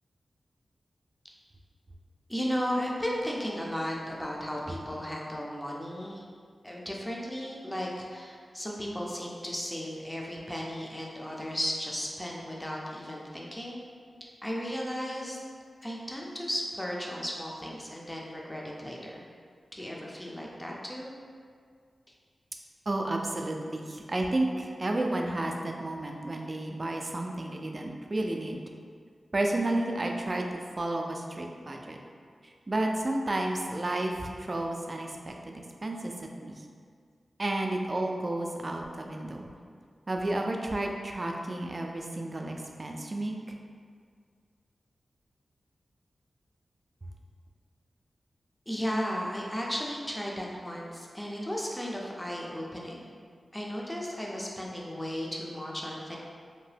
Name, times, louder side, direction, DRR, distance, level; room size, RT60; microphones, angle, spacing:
voice 1, 2.3-6.2 6.6-13.8 14.2-15.4 15.8-19.2 19.7-21.1 24.6-24.7 48.7-53.1 53.5-56.2, equal, 10° left, -3 dB, 0.5 m, -35 dB
voice 2, 22.9-28.6 29.3-32.0 32.7-36.1 36.4-36.6 37.4-39.5 40.1-43.4, right 1 dB, 40° right, 2 dB, 0.3 m, -31 dB
2.8 x 2.1 x 3.2 m, 2.1 s
cardioid pair, 50°, 0 cm